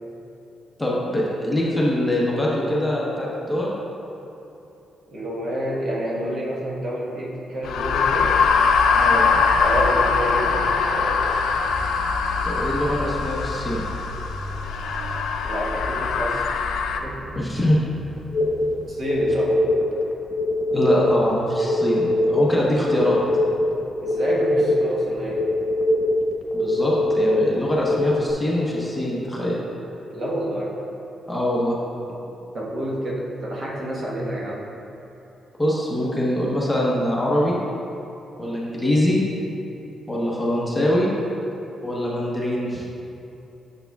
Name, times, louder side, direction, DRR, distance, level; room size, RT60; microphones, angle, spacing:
voice 1, 0.8-3.7 9.0-9.3 12.4-13.8 17.3-17.8 20.7-23.2 26.5-29.6 31.3-31.8 35.6-37.6 38.4-39.2 40.1-41.1 41.8-42.8, left 1 dB, 5° left, -5 dB, 0.9 m, -23 dB
voice 2, 5.1-8.4 9.6-11.4 15.4-16.7 17.0-17.4 18.9-19.7 24.0-25.5 30.1-30.7 32.5-34.7, right 1 dB, 45° right, -4 dB, 1.2 m, -28 dB
sound 1, 7.6-17.0, left 5 dB, 85° left, 0.4 m, -22 dB
sound 2, 11.5-19.3, equal, 15° right, 1.0 m, -40 dB
sound 3, 18.3-28.3, left 1 dB, 55° left, 1.0 m, -22 dB
8.6 x 6.8 x 2.3 m, 2.9 s
cardioid pair, 140°, 0 cm